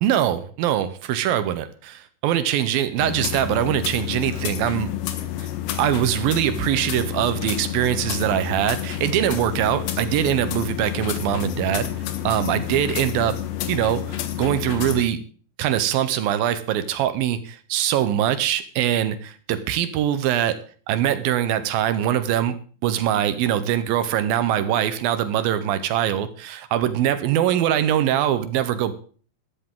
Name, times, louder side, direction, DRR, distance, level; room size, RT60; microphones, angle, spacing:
voice 1, 0.0-4.9 5.4-5.5 5.8-11.9 12.2-13.4 13.7-15.2 15.6-20.6 20.9-22.6 22.8-28.9, right 11 dB, 75° right, 11 dB, 2.3 m, -23 dB
sound 1, 3.0-15.0, left 12 dB, 85° left, 3.4 m, -29 dB
13.5 x 13.0 x 3.7 m, 0.41 s
omnidirectional pair, 5.0 m